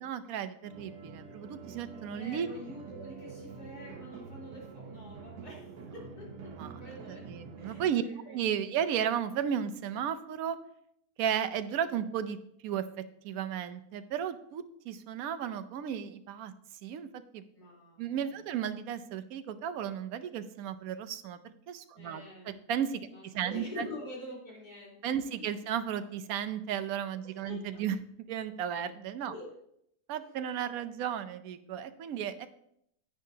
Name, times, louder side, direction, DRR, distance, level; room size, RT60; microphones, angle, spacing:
voice 1, 0.0-2.5 6.6-6.8 7.3-10.6 11.2-12.4 12.6-12.9 13.2-16.5 16.8-17.1 17.3-17.4 18.0-22.2 22.7-23.0 23.3-23.9 25.0-27.9 28.3-29.3 30.1-32.5, right 9 dB, 70° right, 11 dB, 1.1 m, -34 dB
sound 1, 0.6-7.9, right 5 dB, 85° right, 1.5 m, -46 dB
voice 2, 1.9-8.8 17.5-18.4 21.9-22.6 23.1-25.5 27.2-27.8 29.3-29.5, left 2 dB, 75° left, -5 dB, 4.1 m, -47 dB
10.0 x 9.4 x 2.8 m, 0.72 s
omnidirectional pair, 1.7 m